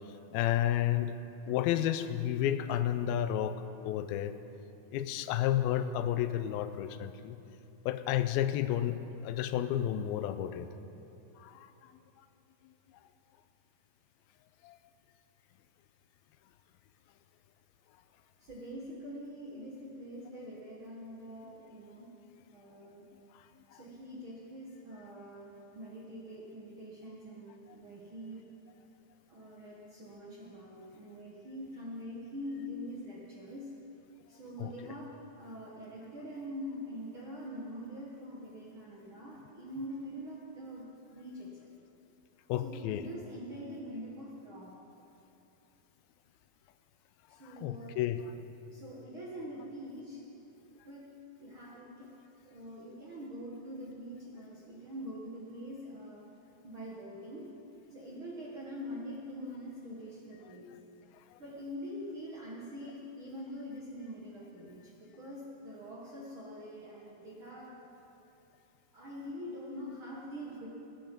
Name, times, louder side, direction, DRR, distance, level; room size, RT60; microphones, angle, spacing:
voice 1, 0.3-1.1 1.5-4.3 4.9-7.4 7.9-10.7 11.4-11.7 14.6-14.8 23.3-23.4 23.7-23.8 34.6-34.7 42.5-43.1 47.4-48.2 61.3-61.4, left 11 dB, 85° left, 11 dB, 2.4 m, -31 dB
voice 2, 18.4-22.1 22.5-23.1 23.7-28.5 29.3-33.7 34.3-35.1 35.4-41.7 42.6-44.7 47.3-47.9 48.7-50.2 50.8-51.1 51.4-52.1 52.4-56.2 56.6-57.5 57.9-60.8 61.4-67.9 68.9-70.7, equal, 55° right, -4 dB, 1.5 m, -44 dB
19.5 x 9.2 x 5.2 m, 2.9 s
omnidirectional pair, 4.2 m